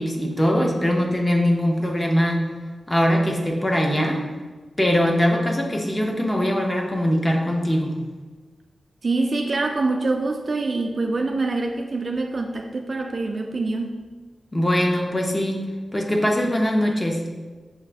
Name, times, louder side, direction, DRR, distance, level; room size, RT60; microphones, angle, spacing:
voice 1, 0.0-2.4 2.9-4.2 4.8-8.0 14.5-15.6 15.9-17.2, equal, 20° left, 0 dB, 0.5 m, -21 dB
voice 2, 9.0-14.0, right 3 dB, 40° right, 3 dB, 0.3 m, -25 dB
6.1 x 2.5 x 3.3 m, 1.4 s
wide cardioid pair, 155°, 0 cm